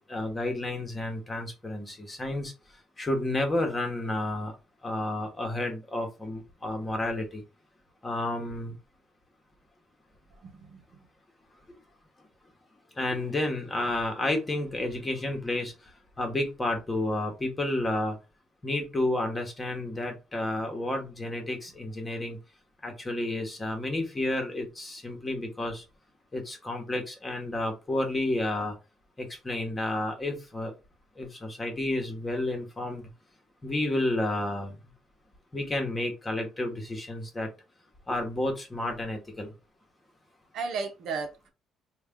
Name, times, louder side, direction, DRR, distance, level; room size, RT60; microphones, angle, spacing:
voice 1, 0.1-2.5 3.0-4.5 4.8-7.4 8.0-8.8 13.0-15.7 16.2-18.2 18.6-22.4 22.8-25.8 26.3-28.7 29.2-30.7 31.2-33.1 33.6-34.8 35.5-37.5 38.1-39.5, left 1 dB, 20° left, 3 dB, 1.2 m, -31 dB
voice 2, 10.4-11.1 40.5-41.5, right 4 dB, 70° right, 5 dB, 0.8 m, -35 dB
3.2 x 2.4 x 3.6 m, 0.28 s
cardioid pair, 105°, 0 cm